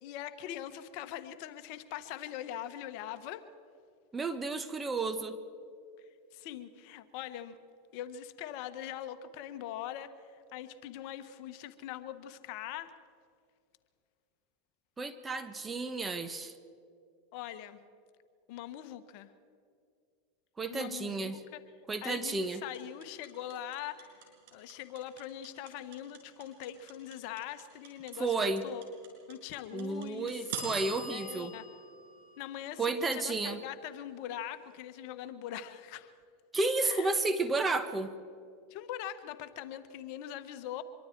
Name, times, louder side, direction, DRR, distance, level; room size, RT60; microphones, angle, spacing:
voice 1, 0.0-3.4 6.0-7.6 7.9-12.9 17.3-17.8 18.5-19.3 20.7-21.6 22.0-28.8 29.3-30.5 31.1-31.7 32.4-36.1 36.8-37.1 38.7-40.8, left 11 dB, 60° left, 11 dB, 1.2 m, -42 dB
voice 2, 4.1-5.4 15.0-16.5 20.6-21.4 21.9-22.6 28.2-28.6 29.7-31.5 32.8-33.6 36.5-38.1, right 3 dB, 15° right, 10 dB, 1.3 m, -32 dB
sound 1, 22.7-32.9, right 4 dB, 70° right, 6.3 m, -44 dB
25.0 x 23.0 x 4.6 m, 2.4 s
hypercardioid pair, 115°, 0 cm